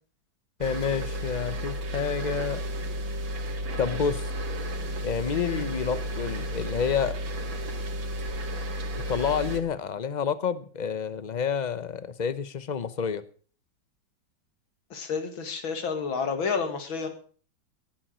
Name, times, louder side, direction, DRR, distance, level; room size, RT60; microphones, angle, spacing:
voice 1, 0.6-2.6 3.8-4.2 5.0-7.1 9.1-13.2, left 7 dB, 50° left, 14 dB, 0.5 m, -29 dB
sound 1, 0.6-9.6, equal, 85° right, 2.6 m, -32 dB
voice 2, 14.9-17.1, left 5 dB, 90° left, 7 dB, 2.9 m, -30 dB
18.5 x 8.6 x 6.3 m, 0.43 s
omnidirectional pair, 2.1 m